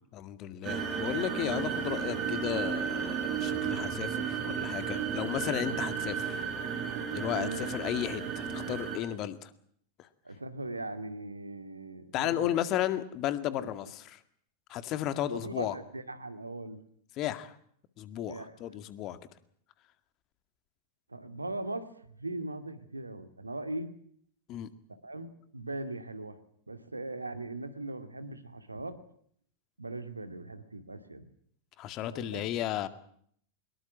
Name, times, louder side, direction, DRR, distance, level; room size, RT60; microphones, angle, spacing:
voice 1, 0.1-6.4 7.1-9.5 10.0-10.1 12.1-14.2 14.7-15.8 17.2-17.5 18.0-19.2 24.5-24.7 31.8-32.9, left 12 dB, 35° left, 12 dB, 2.0 m, -34 dB
sound 1, 0.6-9.0, right 7 dB, 30° right, 6.1 m, -33 dB
voice 2, 10.2-12.5 13.5-13.7 15.3-16.8 18.3-18.6 21.1-23.9 25.0-26.4 26.7-29.0 29.8-31.2 32.1-32.4, right 2 dB, 80° right, 9 dB, 2.3 m, -39 dB
24.0 x 22.0 x 7.3 m, 0.64 s
figure-of-eight pair, 90°, 0 cm